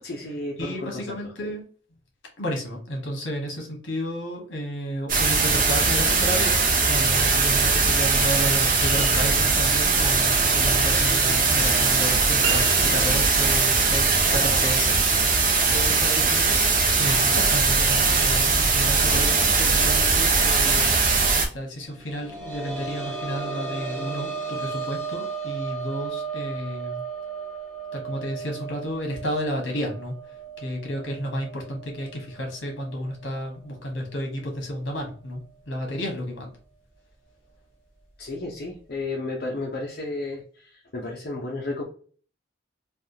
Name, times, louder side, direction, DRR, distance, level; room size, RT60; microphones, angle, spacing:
voice 1, 0.0-1.3 38.2-41.8, left 2 dB, 55° left, -3 dB, 0.7 m, -33 dB
voice 2, 0.6-1.6 2.4-6.6 6.9-15.3 15.7-21.0 21.5-27.0 27.9-36.5, equal, 75° left, 1 dB, 1.3 m, -32 dB
sound 1, 5.1-21.5, right 4 dB, 45° right, 0.7 m, -20 dB
sound 2, 12.4-13.5, right 7 dB, 90° right, 0.6 m, -31 dB
sound 3, 21.9-33.3 33.7-33.8 35.3-35.4, right 5 dB, 5° left, 1.5 m, -35 dB
3.4 x 2.3 x 2.7 m, 0.43 s
head